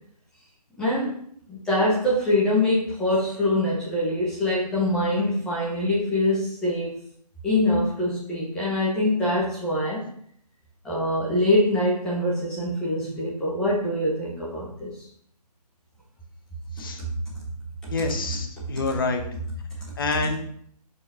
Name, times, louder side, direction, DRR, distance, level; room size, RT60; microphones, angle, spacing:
voice 1, 0.8-1.2 1.5-7.0 7.4-10.0 10.8-15.0 17.0-17.1 17.8-17.9, left 1 dB, 5° left, -7 dB, 1.1 m, -24 dB
voice 2, 17.9-19.2 20.0-20.4, left 3 dB, 30° left, 4 dB, 1.1 m, -27 dB
11.5 x 4.8 x 4.3 m, 0.64 s
hypercardioid pair, 175°, 21 cm